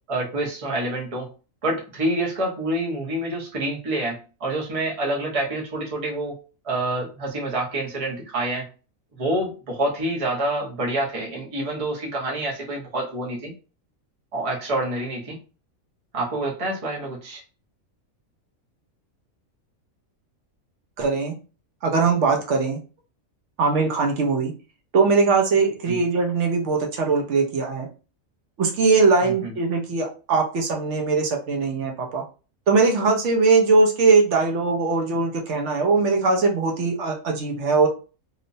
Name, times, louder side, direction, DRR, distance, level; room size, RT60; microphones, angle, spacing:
voice 1, 0.1-1.3 1.6-6.4 6.6-8.7 9.2-13.5 14.3-15.4 16.1-17.4 25.9-26.0 29.2-29.5, right 1 dB, 30° right, -2 dB, 0.7 m, -27 dB
voice 2, 21.0-21.4 21.8-22.8 23.6-24.5 24.9-27.9 28.6-32.2 32.7-37.9, right 4 dB, 65° right, 2 dB, 0.9 m, -20 dB
2.9 x 2.1 x 2.6 m, 0.34 s
omnidirectional pair, 1.4 m